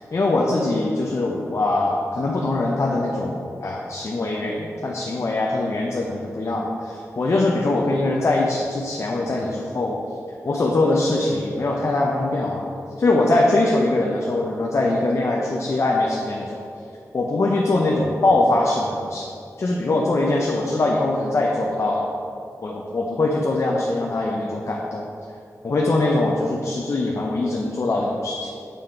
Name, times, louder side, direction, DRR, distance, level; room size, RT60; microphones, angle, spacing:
voice 1, 0.1-10.0 10.4-12.7 13.0-16.6 17.1-19.2 19.6-22.1 22.6-25.1 25.6-28.5, left 2 dB, 55° left, -2 dB, 0.6 m, -22 dB
6.9 x 3.7 x 4.4 m, 2.4 s
cardioid pair, 60°, 6 cm